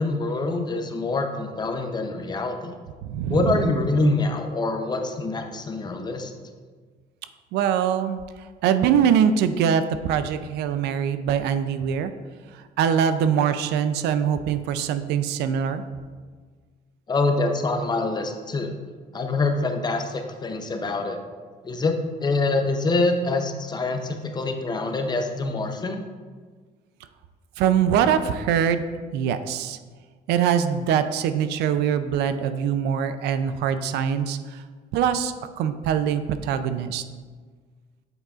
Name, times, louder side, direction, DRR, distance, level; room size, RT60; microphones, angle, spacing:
voice 1, 0.0-2.7 3.3-6.3 17.1-18.7 19.1-21.2 21.6-26.0, left 3 dB, 25° left, 5 dB, 0.6 m, -25 dB
voice 2, 3.0-3.7 7.5-8.2 8.6-12.1 12.8-15.8 27.6-28.8 29.1-29.8 30.3-34.6 34.9-37.0, right 8 dB, 80° right, 11 dB, 0.4 m, -23 dB
7.9 x 4.9 x 2.4 m, 1.5 s
cardioid pair, 110°, 17 cm